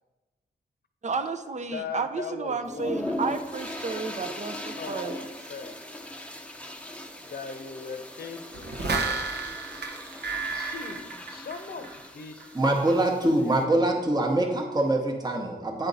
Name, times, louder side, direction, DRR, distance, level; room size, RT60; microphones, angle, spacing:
voice 1, 1.0-5.2, right 4 dB, 45° right, 9 dB, 0.6 m, -32 dB
voice 2, 1.7-3.0 3.8-3.9 4.6-5.8 7.2-9.1 10.5-12.8 13.2-14.0, left 5 dB, 65° left, 7 dB, 0.7 m, -40 dB
sound 1, 2.6-13.6, left 1 dB, 5° left, 0.6 m, -39 dB
sound 2, 8.5-12.1 12.4-12.5, right 3 dB, 75° right, 0.9 m, -32 dB
voice 3, 12.5-15.9, right 1 dB, 25° right, 1 dB, 0.9 m, -24 dB
9.2 x 4.4 x 3.9 m, 1.2 s
wide cardioid pair, 85°, 17 cm